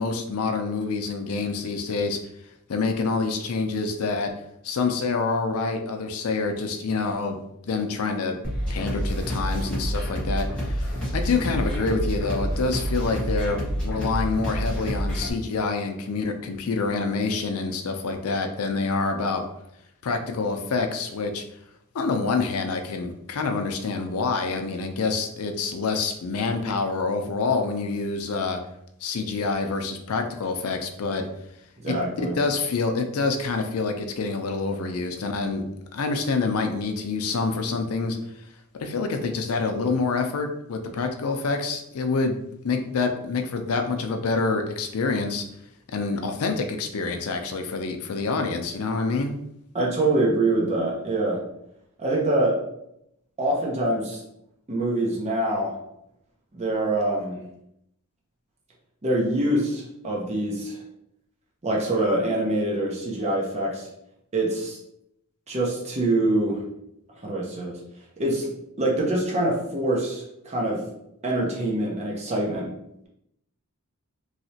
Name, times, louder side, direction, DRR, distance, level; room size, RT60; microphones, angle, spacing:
voice 1, 0.0-2.2 2.7-4.3 4.6-7.4 7.6-8.4 8.7-19.4 20.0-21.4 21.9-28.6 29.0-31.2 31.9-35.6 35.9-38.2 38.8-42.4 42.6-45.4 45.9-49.3, left 4 dB, 75° left, 5 dB, 0.5 m, -27 dB
sound 1, 8.4-15.3, equal, 5° left, 1.3 m, -28 dB
voice 2, 31.8-32.4 49.7-51.4 52.0-52.6 53.4-54.2 54.7-55.8 56.5-57.4 59.0-60.8 61.6-63.9 64.3-64.8 65.5-66.6 67.2-67.8 68.2-68.5 68.8-70.8 71.2-72.7, right 1 dB, 30° right, -3 dB, 0.7 m, -25 dB
3.1 x 2.8 x 2.8 m, 0.79 s
head